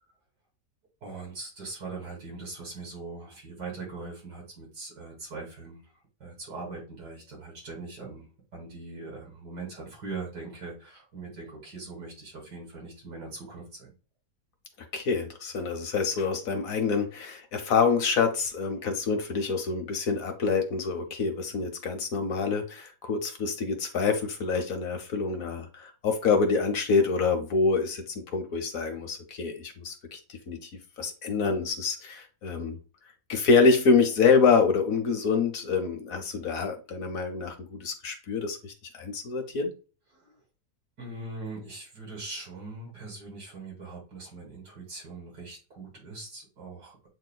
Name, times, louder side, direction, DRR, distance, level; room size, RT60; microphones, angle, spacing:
voice 1, 1.0-5.8 6.2-13.9 40.1-40.4 41.0-47.1, right 3 dB, 85° right, -2 dB, 3.0 m, -41 dB
voice 2, 14.9-30.7 31.0-32.8 33.3-39.7, left 5 dB, 60° left, 5 dB, 1.3 m, -26 dB
8.4 x 2.9 x 2.2 m, 0.34 s
omnidirectional pair, 1.7 m